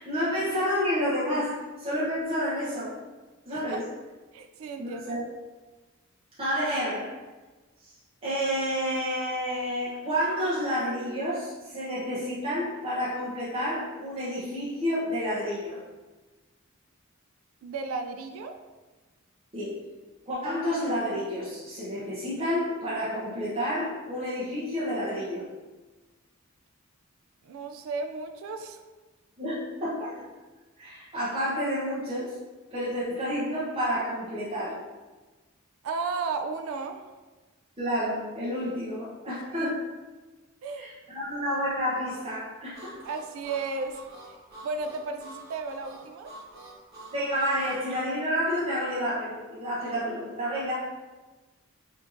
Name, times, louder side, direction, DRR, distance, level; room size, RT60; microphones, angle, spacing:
voice 1, 0.0-2.9 3.5-3.8 4.8-5.2 6.4-7.1 7.8-7.9 8.2-15.8 19.5-19.8 20.3-25.4 29.4-30.1 30.8-32.4 32.7-34.8 37.8-39.8 40.7-43.0 47.1-50.7, equal, 25° right, -10 dB, 0.7 m, -30 dB
voice 2, 4.3-5.2 17.6-18.6 27.4-28.8 35.8-37.0 39.5-39.7 40.6-40.9 43.0-44.1 44.6-46.3, right 4 dB, 70° right, 6 dB, 0.3 m, -34 dB
Harmonica, 42.7-47.8, right 2 dB, 50° right, 1.2 m, -46 dB
4.3 x 2.7 x 2.5 m, 1.2 s
head